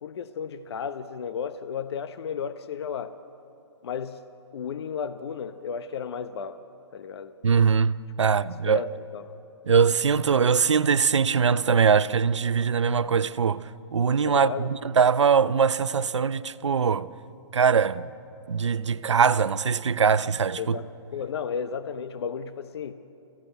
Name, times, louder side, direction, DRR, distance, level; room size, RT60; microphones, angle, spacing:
voice 1, 0.0-3.1 3.8-4.2 4.5-6.6 6.9-7.3 8.7-9.2 14.2-14.7 20.6-22.9, left 7 dB, 65° left, 0.9 m, -33 dB
voice 2, 7.4-8.8 9.7-13.6 13.9-17.1 17.5-18.1 18.5-20.8, right 6 dB, 90° right, 0.7 m, -22 dB
27.5 x 15.5 x 8.1 m
hypercardioid pair, 140°, 15 cm